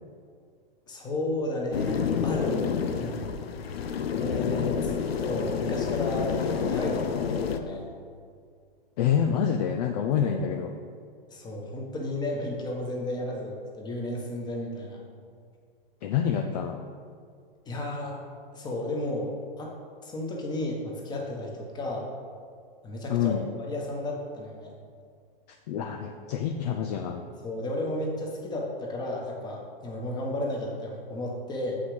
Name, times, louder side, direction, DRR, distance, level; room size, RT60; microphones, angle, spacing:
voice 1, 0.9-2.7 2.9-3.3 4.1-7.9 10.2-10.4 11.3-15.0 17.6-18.2 18.5-19.3 19.6-19.7 20.0-22.1 22.8-24.7 27.4-31.8, left 1 dB, 15° left, -1 dB, 1.4 m, -33 dB
sound 1, 1.7-7.6, left 6 dB, 90° left, 0.7 m, -29 dB
voice 2, 9.0-10.7 16.0-16.8 23.1-23.5 25.7-27.2, left 8 dB, 45° left, 4 dB, 0.6 m, -27 dB
7.9 x 5.7 x 5.0 m, 2.1 s
hypercardioid pair, 140°, 29 cm